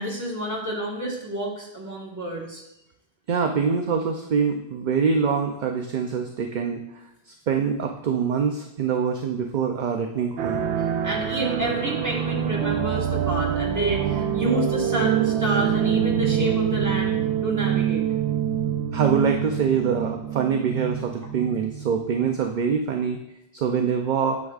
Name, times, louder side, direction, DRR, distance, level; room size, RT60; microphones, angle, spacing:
voice 1, 0.0-2.6 11.0-17.2 17.4-18.0, equal, 15° right, -3 dB, 1.5 m, -29 dB
voice 2, 3.3-10.7 18.9-23.2 23.5-24.4, right 6 dB, 55° right, 3 dB, 0.6 m, -24 dB
sound 1, 10.4-22.4, right 9 dB, 90° right, 0.9 m, -25 dB
9.5 x 6.2 x 2.4 m, 0.83 s
omnidirectional pair, 1.1 m